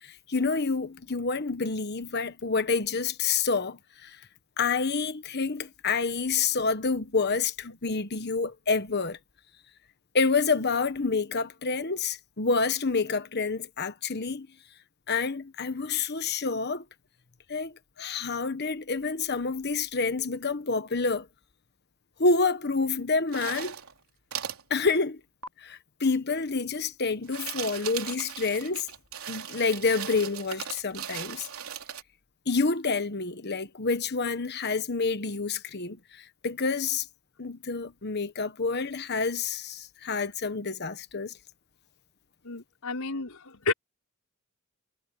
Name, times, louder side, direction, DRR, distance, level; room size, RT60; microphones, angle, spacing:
voice 1, 0.0-4.2 4.6-9.2 10.1-14.5 15.1-16.8 17.5-21.3 22.2-23.7 24.7-25.2 25.6-28.9 29.3-31.5 32.5-37.1 37.4-41.3, left 4 dB, 50° left, 1.2 m, -28 dB
sound 1, 23.3-23.9 24.3-24.6 25.4-25.5 27.1-32.0, right 9 dB, 85° right, 3.3 m, -38 dB
voice 2, 42.4-43.7, left 3 dB, 90° left, 4.9 m, -31 dB
head